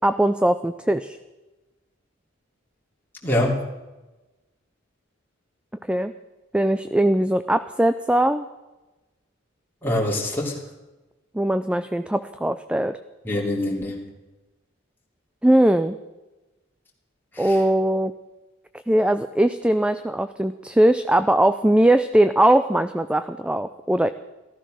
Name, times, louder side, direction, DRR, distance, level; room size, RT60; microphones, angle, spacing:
voice 1, 0.0-1.2 5.9-6.1 6.5-8.4 11.3-13.0 15.4-16.0 17.4-18.1 18.9-24.1, right 1 dB, 5° right, 11 dB, 0.4 m, -20 dB
voice 2, 3.2-3.6 9.8-10.6 13.2-14.0 17.3-17.6, left 1 dB, 10° left, -3 dB, 2.9 m, -24 dB
14.0 x 14.0 x 6.4 m, 1.1 s
head